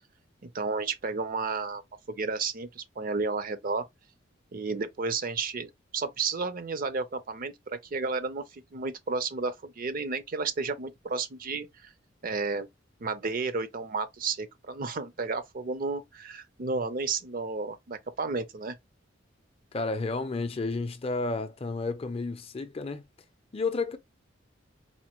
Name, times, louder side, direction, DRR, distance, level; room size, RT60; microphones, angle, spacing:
voice 1, 0.5-1.8 2.1-3.8 4.5-11.9 12.2-12.7 13.0-18.8, right 4 dB, 50° right, 0.5 m, -32 dB
voice 2, 19.7-23.0 23.5-24.0, left 3 dB, 30° left, 0.5 m, -31 dB
4.3 x 2.2 x 2.9 m
head